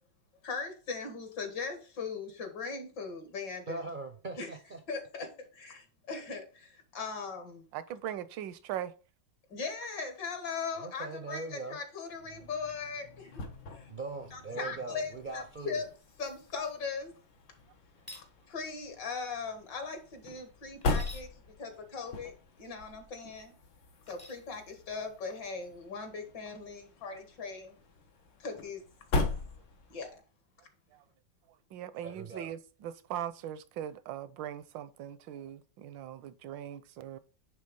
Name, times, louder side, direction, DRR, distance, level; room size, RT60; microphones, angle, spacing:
voice 1, 0.4-3.8 4.4-4.5 4.9-5.3 5.6-7.6 9.5-13.3 13.7-13.8 14.3-15.8 16.2-17.1 18.2-21.3 21.6-22.3 22.6-23.5 24.1-27.8 28.4-28.8 29.9-30.1, left 4 dB, 70° left, 2.2 m, -39 dB
voice 2, 3.7-4.8 10.7-11.8 13.9-15.9 32.0-32.5, right 3 dB, 60° right, 0.5 m, -41 dB
voice 3, 7.7-8.9 30.9-31.0 31.7-37.2, right 11 dB, 80° right, 1.4 m, -40 dB
sound 1, 12.1-30.2, left 3 dB, 85° left, 2.1 m, -40 dB
sound 2, 18.0-18.3 20.8-21.3 24.1-24.4, left 1 dB, 20° left, 0.6 m, -48 dB
9.8 x 3.4 x 5.2 m
omnidirectional pair, 2.0 m